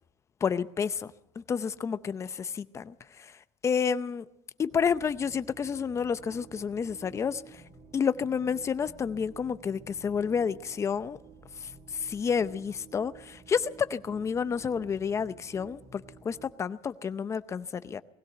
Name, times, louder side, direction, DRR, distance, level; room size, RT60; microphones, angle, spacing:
voice 1, 0.4-4.3 4.6-7.6 7.9-11.2 11.6-18.0, left 6 dB, 25° left, 0.7 m, -30 dB
sound 1, 4.7-16.5, right 4 dB, 45° right, 2.1 m, -52 dB
20.0 x 16.5 x 7.9 m
cardioid pair, 155°, 12 cm